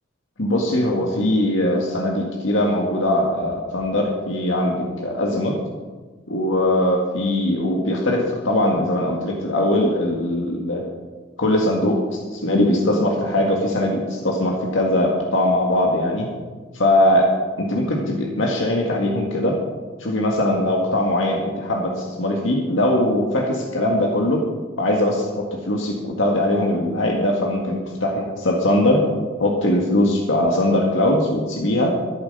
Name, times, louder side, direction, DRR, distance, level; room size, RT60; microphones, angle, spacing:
voice 1, 0.4-5.6 6.3-10.8 11.4-16.3 16.7-19.6 20.0-24.4 24.8-29.0 29.4-32.0, left 1 dB, 80° left, -1 dB, 1.8 m, -21 dB
13.0 x 11.0 x 5.4 m, 1.3 s
head